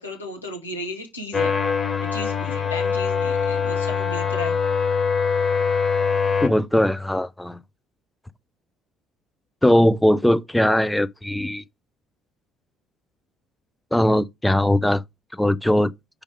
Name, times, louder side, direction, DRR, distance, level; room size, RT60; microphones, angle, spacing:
voice 1, 0.0-1.6 2.0-4.6, left 2 dB, 90° left, 1.5 m, -34 dB
sound 1, 1.3-6.5, left 5 dB, 25° left, 2.1 m, -23 dB
voice 2, 6.4-7.6 9.6-11.6 13.9-15.0 15.3-15.9, left 1 dB, 5° left, 0.5 m, -20 dB
6.3 x 5.0 x 4.8 m
figure-of-eight pair, 50°, 0 cm